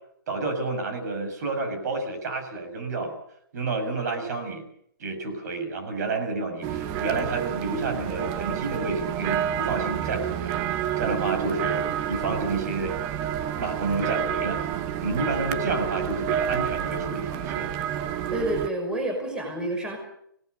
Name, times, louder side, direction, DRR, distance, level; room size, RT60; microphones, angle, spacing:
voice 1, 0.3-3.2 3.5-4.7 5.0-13.0 13.6-14.6 15.0-17.7, right 3 dB, 50° right, 7 dB, 6.8 m, -30 dB
sound 1, 6.6-18.7, right 9 dB, 25° right, 1.2 m, -29 dB
voice 2, 18.3-20.0, right 1 dB, 5° right, 3 dB, 5.9 m, -29 dB
26.0 x 19.0 x 6.8 m, 0.71 s
hypercardioid pair, 150°, 12 cm